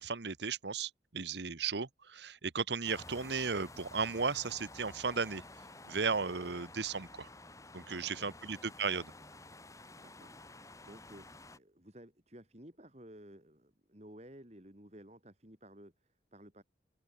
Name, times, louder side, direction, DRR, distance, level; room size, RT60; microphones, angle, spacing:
voice 1, 0.0-5.4 5.8-7.3 7.7-9.1, right 5 dB, 70° right, 1.1 m, -35 dB
sound 1, 2.8-11.6, left 2 dB, 15° left, 4.3 m, -52 dB
voice 2, 7.8-8.3 10.0-10.4 10.8-16.6, right 1 dB, 35° right, 3.7 m, -55 dB
open air
head